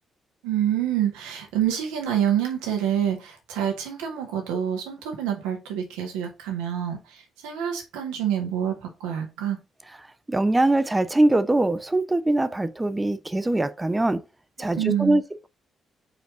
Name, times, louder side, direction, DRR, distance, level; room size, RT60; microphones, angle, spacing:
voice 1, 0.4-9.6 14.8-15.2, right 10 dB, 75° right, 1.6 m, -27 dB
voice 2, 10.3-14.2 14.6-15.5, right 2 dB, 20° right, 0.8 m, -22 dB
4.9 x 4.5 x 4.9 m
hypercardioid pair, 40°, 0 cm